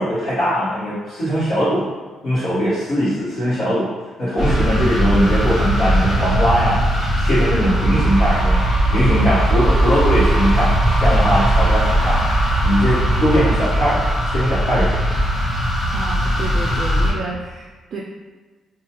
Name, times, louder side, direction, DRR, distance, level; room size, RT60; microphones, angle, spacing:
voice 1, 0.0-1.9 2.2-3.9 4.2-8.6 8.9-10.7 11.0-12.2 12.6-15.0, equal, 70° left, -15 dB, 1.3 m, -20 dB
sound 1, 4.4-17.1, right 1 dB, 30° left, 1.4 m, -18 dB
voice 2, 15.9-18.0, right 3 dB, 55° right, -2 dB, 0.3 m, -30 dB
2.9 x 2.3 x 2.9 m, 1.4 s
cardioid pair, 90°, 0 cm